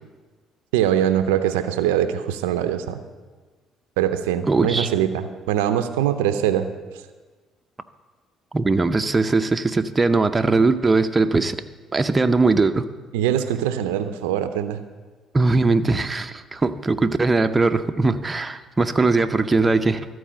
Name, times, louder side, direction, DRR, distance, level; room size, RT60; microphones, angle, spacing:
voice 1, 0.7-3.0 4.0-6.7 13.1-14.8, right 10 dB, 90° right, 9 dB, 0.5 m, -22 dB
voice 2, 4.5-4.9 8.5-11.6 11.9-12.8 15.3-20.1, right 3 dB, 25° right, 8 dB, 0.6 m, -20 dB
13.5 x 4.7 x 7.5 m, 1.3 s
supercardioid pair, 65°, 0 cm